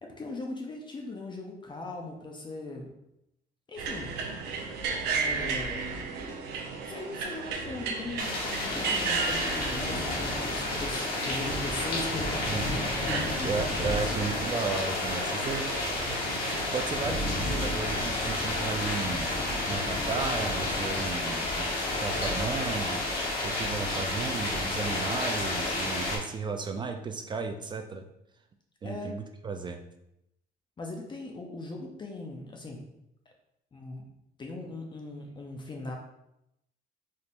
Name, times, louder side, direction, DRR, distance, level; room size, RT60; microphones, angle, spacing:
voice 1, 0.0-2.9 3.7-4.2 5.1-5.9 6.8-13.5 28.8-29.1 30.8-32.9 33.7-34.1 34.4-35.9, left 2 dB, 25° left, 1 dB, 0.7 m, -39 dB
sound 1, 3.8-16.9, right 5 dB, 85° right, 0.7 m, -35 dB
sound 2, 8.2-26.2, left 2 dB, 60° left, 1.1 m, -30 dB
voice 2, 13.4-15.9 16.7-19.3 19.7-28.0 28.8-29.8, right 4 dB, 25° right, 5 dB, 0.3 m, -34 dB
4.0 x 3.5 x 2.5 m, 0.84 s
cardioid pair, 110°, 17 cm